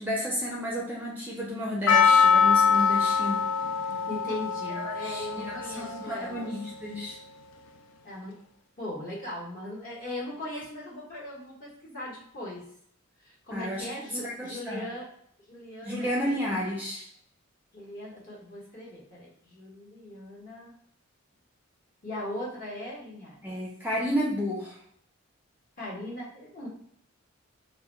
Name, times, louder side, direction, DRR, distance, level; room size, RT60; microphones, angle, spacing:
voice 1, 0.0-3.5 4.8-7.2 13.5-13.9 14.2-14.9 15.8-17.1 23.4-24.8, equal, 10° right, -4 dB, 0.4 m, -32 dB
Percussion, 1.9-6.8, left 6 dB, 70° left, 0.3 m, -24 dB
voice 2, 4.1-6.5 8.0-8.3 8.8-12.6 13.2-15.1 15.5-16.2 17.7-20.7 22.0-23.6 25.8-26.7, left 1 dB, 45° left, -6 dB, 0.9 m, -39 dB
2.1 x 2.1 x 3.0 m, 0.67 s
head